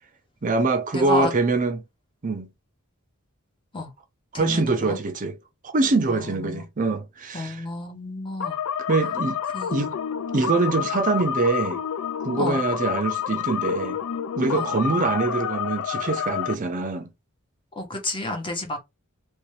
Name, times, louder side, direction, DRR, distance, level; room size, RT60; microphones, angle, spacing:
voice 1, 0.4-1.8 2.2-2.5 4.4-5.4 5.7-7.6 8.9-9.4 9.7-10.0 10.3-11.8 12.2-14.0 14.4-17.1, right 3 dB, 35° right, 0.5 m, -24 dB
voice 2, 0.9-1.3 3.7-3.9 4.3-5.0 6.1-6.6 7.3-8.6 9.5-9.9 12.4-12.6 14.5-14.7 17.8-18.8, left 2 dB, 25° left, 1.0 m, -31 dB
sound 1, 8.4-16.6, left 8 dB, 65° left, 0.3 m, -29 dB
3.2 x 2.7 x 3.1 m
head